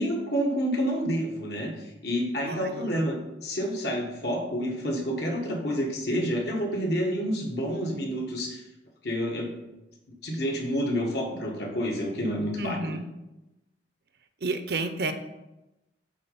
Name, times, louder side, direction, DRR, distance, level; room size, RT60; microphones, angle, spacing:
voice 1, 0.0-3.2 3.4-8.6 9.0-9.5 10.2-12.9, equal, 65° left, 0 dB, 1.7 m, -29 dB
voice 2, 2.5-3.0 12.6-13.1 14.4-15.1, right 3 dB, 60° right, 9 dB, 0.7 m, -31 dB
8.4 x 4.2 x 5.5 m, 0.97 s
head